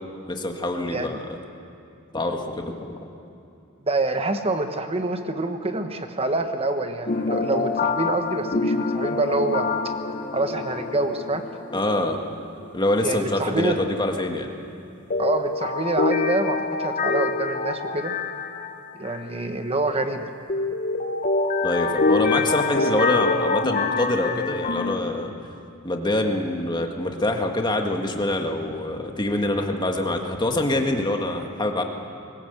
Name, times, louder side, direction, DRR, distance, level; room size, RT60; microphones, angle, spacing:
voice 1, 0.3-1.2 2.1-2.9 11.7-12.2 12.7-14.5 21.6-25.3 25.8-31.8, left 1 dB, 20° left, 3 dB, 1.8 m, -25 dB
voice 2, 3.8-9.7 10.3-11.4 13.0-13.8 15.2-18.1 19.0-20.3, right 2 dB, 30° right, 7 dB, 1.3 m, -26 dB
sound 1, 7.1-12.4 12.7-12.8 15.1-19.2 20.5-25.0, left 3 dB, 40° left, 0.9 m, -25 dB
21.0 x 18.5 x 8.2 m, 2.7 s
head